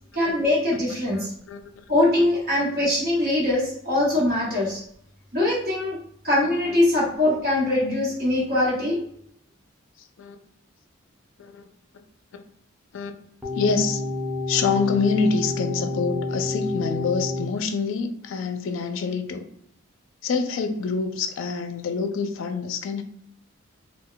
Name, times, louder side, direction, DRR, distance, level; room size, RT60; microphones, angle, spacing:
voice 1, 0.1-1.3 1.9-4.8 5.3-6.0 6.2-9.0, left 1 dB, 45° right, 1.2 m, -22 dB
voice 2, 1.1-1.6 4.1-4.2 10.2-10.4 11.4-11.7 12.3-12.4 12.9-13.2 13.5-14.0 14.5-19.5 20.2-23.0, left 5 dB, 70° left, 0.4 m, -26 dB
sound 1, 13.4-17.5, left 2 dB, 5° right, 0.4 m, -29 dB
2.3 x 2.2 x 3.7 m
head